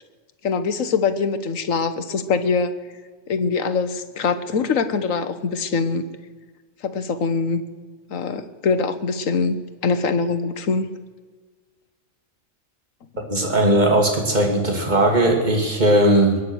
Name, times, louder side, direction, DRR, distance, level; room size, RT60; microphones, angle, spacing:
voice 1, 0.4-2.7 3.3-6.1 6.8-7.6 8.1-10.9, left 5 dB, 85° left, 11 dB, 1.5 m, -23 dB
voice 2, 13.3-16.4, right 1 dB, 35° right, 2 dB, 2.6 m, -18 dB
22.0 x 9.7 x 6.3 m, 1.5 s
omnidirectional pair, 1.3 m